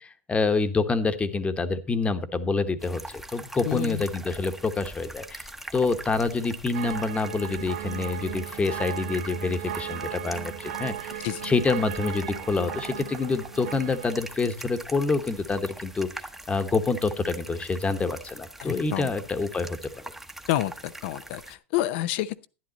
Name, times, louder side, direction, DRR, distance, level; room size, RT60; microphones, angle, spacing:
voice 1, 0.3-16.1 16.5-20.0, left 3 dB, 20° left, 1.2 m, -27 dB
sound 1, 2.8-21.5, right 1 dB, 5° right, 1.0 m, -43 dB
voice 2, 3.7-4.0 11.2-11.5 18.6-19.1 20.5-22.5, left 14 dB, 60° left, 0.7 m, -29 dB
sound 2, 6.7-14.4, right 11 dB, 65° right, 0.8 m, -37 dB
11.0 x 11.0 x 4.1 m
hypercardioid pair, 95°, 7 cm